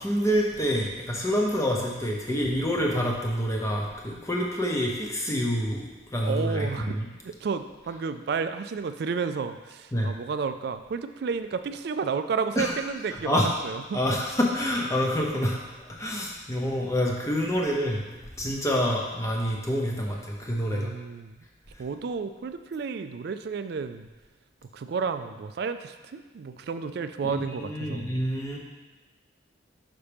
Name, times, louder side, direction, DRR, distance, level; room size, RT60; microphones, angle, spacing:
voice 1, 0.0-7.1 9.9-10.1 12.6-12.7 13.1-13.5 13.9-15.6 15.9-18.0 18.4-20.9 27.2-28.6, equal, 15° left, -1 dB, 0.7 m, -27 dB
voice 2, 6.2-14.0 20.7-21.4 21.8-24.1 24.7-28.1, right 5 dB, 55° right, 10 dB, 0.3 m, -31 dB
5.8 x 5.5 x 3.4 m, 1.2 s
head